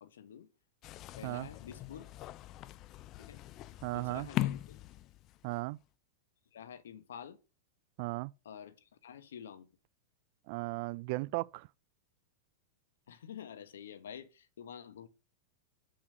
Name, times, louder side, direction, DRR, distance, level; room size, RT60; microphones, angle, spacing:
voice 1, 0.0-0.5 1.2-2.0 3.2-3.4 3.9-4.8 6.5-7.4 8.4-9.7 13.1-15.1, left 8 dB, 85° left, 1.0 m, -48 dB
sound 1, 0.8-5.6, left 15 dB, 40° left, 0.4 m, -40 dB
voice 2, 3.8-4.3 5.4-5.8 8.0-8.3 10.5-11.7, right 23 dB, 55° right, 0.3 m, -36 dB
5.7 x 5.2 x 6.7 m
hypercardioid pair, 130°, 0 cm